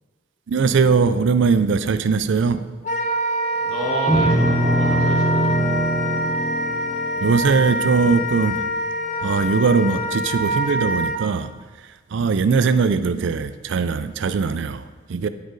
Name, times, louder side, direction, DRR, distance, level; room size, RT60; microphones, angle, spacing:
voice 1, 0.5-2.7 7.2-8.7 9.2-11.5 12.1-15.3, right 5 dB, 60° right, 0.4 m, -20 dB
Wind instrument woodwind instrument, 2.8-11.2, equal, 35° left, 0.6 m, -25 dB
voice 2, 3.6-5.7, equal, 90° left, 2.3 m, -29 dB
sound 1, 4.1-8.5, right 1 dB, 5° right, 1.0 m, -23 dB
9.3 x 5.1 x 3.8 m
head